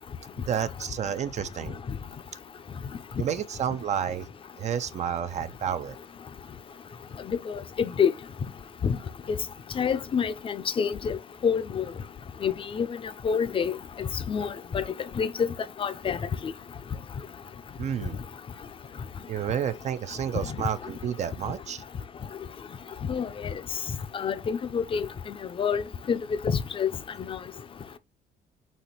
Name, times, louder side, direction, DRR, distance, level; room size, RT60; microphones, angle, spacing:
voice 1, 0.5-1.8 3.2-4.3 4.6-6.0 17.8-18.2 19.3-21.8, right 9 dB, 45° right, 0.4 m, -30 dB
voice 2, 7.3-8.1 8.8-9.0 9.8-11.2 11.4-11.8 12.4-12.9 13.2-13.7 14.0-14.5 14.7-14.8 15.2-15.5 15.8-16.2 23.1-23.3 24.1-25.1 25.6-25.8 26.1-26.2 26.4-26.9 27.3-27.4, left 7 dB, 30° left, 0.5 m, -26 dB
4.2 x 2.9 x 4.3 m
cardioid pair, 110°, 17 cm